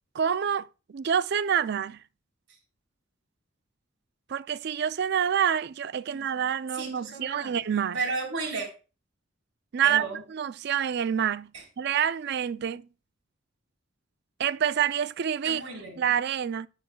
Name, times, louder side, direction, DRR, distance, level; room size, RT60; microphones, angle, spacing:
voice 1, 0.1-2.0 4.3-8.0 9.7-11.5 11.8-12.9 14.4-15.6 16.0-16.7, right 8 dB, 55° right, 0.4 m, -27 dB
voice 2, 6.7-7.6 7.9-8.7 9.8-10.2 11.5-11.6 15.4-16.0, right 3 dB, 70° right, 3.8 m, -33 dB
10.5 x 10.0 x 2.2 m
head